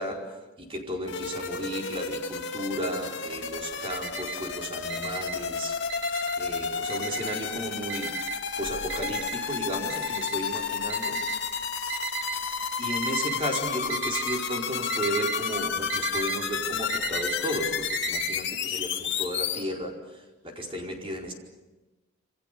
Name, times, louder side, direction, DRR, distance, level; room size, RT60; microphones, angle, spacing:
voice 1, 0.0-6.0 6.4-8.2 8.6-11.2 12.0-12.1 12.8-21.3, equal, 25° right, 0 dB, 4.7 m, -34 dB
sound 1, 1.1-19.6, left 6 dB, 55° left, 2.5 m, -31 dB
Alarm, 3.6-4.5 4.9-6.5 6.9-7.5 7.9-12.4 12.9-13.5 13.8-14.4 14.7-18.4, right 7 dB, 65° right, 3.0 m, -35 dB
28.0 x 26.0 x 6.9 m, 1.1 s
head